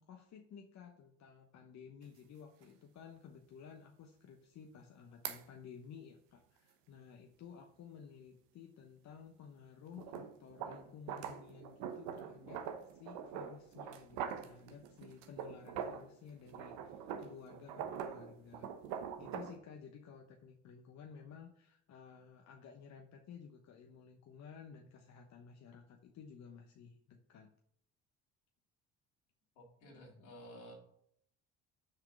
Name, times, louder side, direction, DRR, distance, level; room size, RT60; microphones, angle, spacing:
voice 1, 0.0-18.7 19.2-27.5, left 7 dB, 55° left, 3 dB, 1.1 m, -54 dB
sound 1, 2.0-2.1 2.6-2.7 5.2-5.4 9.9-16.1 16.5-19.6, right 8 dB, 80° right, 1.0 m, -44 dB
voice 2, 29.5-30.7, equal, 80° left, -2 dB, 3.3 m, -53 dB
6.4 x 4.8 x 6.4 m, 0.67 s
supercardioid pair, 75°, 33 cm